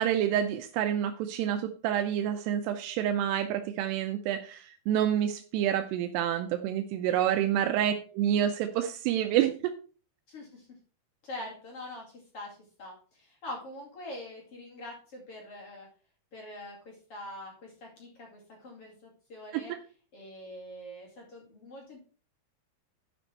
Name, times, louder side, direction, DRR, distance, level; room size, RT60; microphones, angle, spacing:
voice 1, 0.0-9.7 19.5-19.8, right 10 dB, 85° right, 6 dB, 2.7 m, -28 dB
voice 2, 10.3-10.7 11.2-15.9 16.3-19.7 20.1-22.0, left 1 dB, 40° left, -2 dB, 2.8 m, -44 dB
11.0 x 5.4 x 4.5 m, 0.39 s
omnidirectional pair, 4.7 m